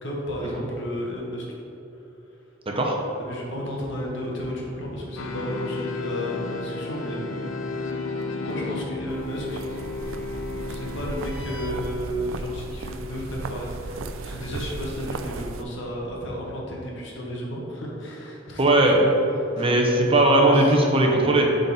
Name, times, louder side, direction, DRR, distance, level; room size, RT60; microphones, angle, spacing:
voice 1, 0.0-1.5 3.2-7.6 8.4-9.6 10.7-19.1 19.6-19.8 20.4-20.7, equal, 65° left, -3 dB, 1.4 m, -32 dB
sound 1, 5.2-11.7, left 3 dB, 80° left, 0.6 m, -33 dB
sound 2, 9.1-15.6, right 3 dB, 85° right, 0.4 m, -36 dB
voice 2, 18.6-19.0 19.6-21.5, right 1 dB, 30° right, 0 dB, 0.7 m, -18 dB
7.7 x 4.0 x 4.1 m, 3.0 s
head